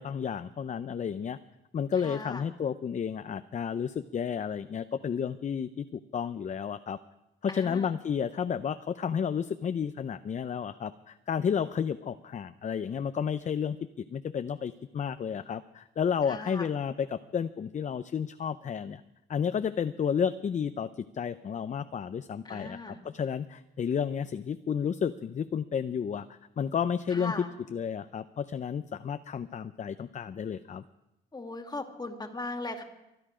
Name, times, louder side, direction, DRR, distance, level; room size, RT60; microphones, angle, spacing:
voice 1, 0.0-1.4 1.7-7.0 7.4-13.8 14.1-19.0 19.3-20.9 21.1-26.3 26.6-30.8, left 7 dB, 40° left, 11 dB, 0.6 m, -31 dB
voice 2, 2.0-2.5 7.5-7.9 16.3-16.7 22.5-23.0 27.1-27.5 31.3-32.8, left 2 dB, 20° left, 5 dB, 2.1 m, -38 dB
24.0 x 9.8 x 5.0 m, 0.93 s
cardioid pair, 90°, 20 cm